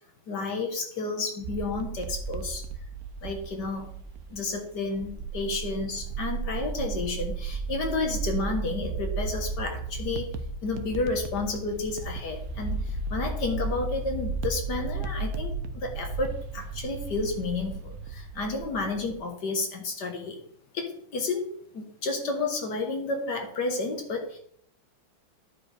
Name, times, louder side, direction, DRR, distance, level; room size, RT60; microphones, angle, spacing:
voice 1, 0.3-2.6 3.2-4.0 4.3-10.3 10.6-20.4 20.7-21.5 21.7-24.4, left 3 dB, 60° left, 3 dB, 1.9 m, -31 dB
sound 1, 1.4-19.2, right 4 dB, 65° right, 0.9 m, -35 dB
sound 2, 8.8-14.7, left 1 dB, 80° left, 1.9 m, -39 dB
10.5 x 4.7 x 4.9 m, 0.65 s
omnidirectional pair, 2.1 m